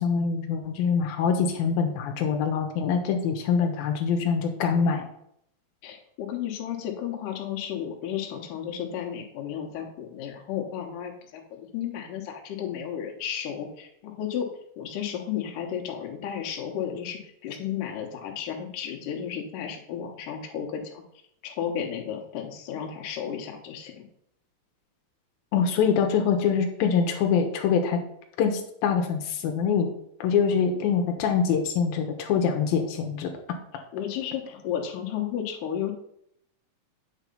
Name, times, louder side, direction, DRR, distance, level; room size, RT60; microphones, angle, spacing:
voice 1, 0.0-5.1 25.5-28.0 28.4-29.9 30.2-33.3, left 6 dB, 90° left, 4 dB, 2.7 m, -24 dB
voice 2, 5.8-14.5 14.8-21.0 21.4-24.0 33.9-35.9, left 9 dB, 70° left, 2 dB, 2.6 m, -33 dB
8.5 x 4.7 x 5.4 m, 0.73 s
omnidirectional pair, 4.1 m